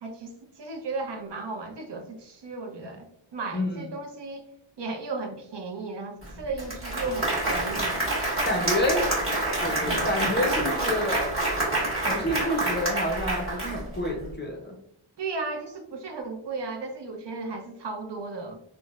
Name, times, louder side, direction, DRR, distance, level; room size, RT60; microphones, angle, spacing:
voice 1, 0.0-4.4 4.8-8.0 15.2-18.6, right 3 dB, 60° right, 3 dB, 0.6 m, -35 dB
voice 2, 3.5-3.9 8.4-9.1 9.6-11.3 12.1-14.7, left 1 dB, 25° left, 0 dB, 0.5 m, -28 dB
Applause, 6.2-6.3 6.6-14.1, right 1 dB, 25° right, 1.3 m, -27 dB
3.7 x 2.1 x 2.3 m, 0.75 s
wide cardioid pair, 125°, 49 cm